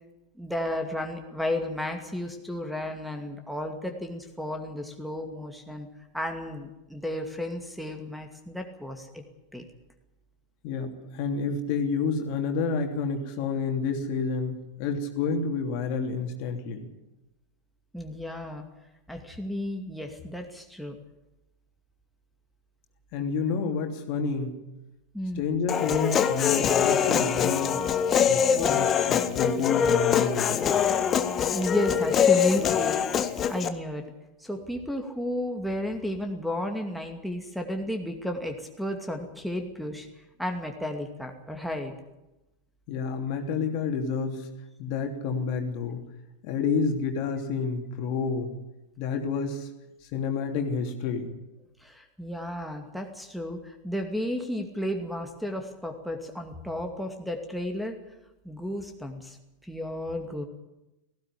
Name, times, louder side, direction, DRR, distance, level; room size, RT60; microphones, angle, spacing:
voice 1, 0.4-5.9 6.1-9.1 9.5-9.7 17.9-18.7 19.1-21.0 25.1-25.4 31.5-33.1 33.5-34.1 34.4-40.1 40.4-41.9 51.8-58.0 58.4-59.4 59.6-60.5, left 1 dB, ahead, 5 dB, 2.4 m, -33 dB
voice 2, 10.6-16.8 23.1-24.6 25.4-27.9 28.3-30.7 42.9-44.5 44.8-46.0 46.4-48.5 49.0-49.7 50.1-51.3, left 5 dB, 45° left, 4 dB, 3.1 m, -29 dB
Human voice, 25.7-33.7, left 8 dB, 25° left, 1.4 m, -24 dB
18.0 x 16.5 x 10.0 m, 0.98 s
figure-of-eight pair, 90°, 0 cm